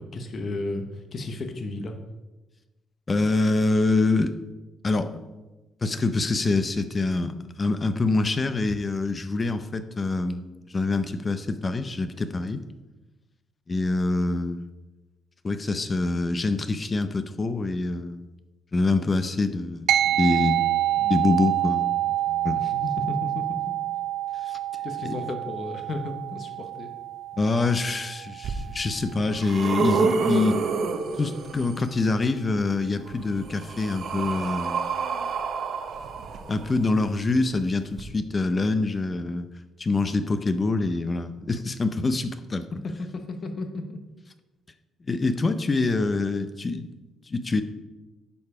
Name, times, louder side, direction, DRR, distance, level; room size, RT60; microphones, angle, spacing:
voice 1, 0.0-2.0 22.5-23.7 24.8-26.9 42.8-44.0, left 2 dB, 45° left, 5 dB, 1.0 m, -34 dB
voice 2, 3.1-4.3 4.8-5.2 5.8-10.4 10.7-12.6 13.7-14.6 15.4-18.2 18.7-20.6 21.0-21.9 22.3-22.6 24.4-24.6 25.0-25.2 27.4-30.6 31.2-34.8 36.5-39.5 39.8-42.7 45.1-46.9 47.3-47.6, left 3 dB, 30° left, 10 dB, 0.6 m, -25 dB
sound 1, 19.9-29.6, right 13 dB, 85° right, 0.4 m, -27 dB
sound 2, 28.4-28.5 29.1-31.9 33.1-37.0 37.9-38.0, right 5 dB, 65° right, 0.9 m, -28 dB
10.5 x 4.7 x 4.9 m, 1.1 s
cardioid pair, 90°, 0 cm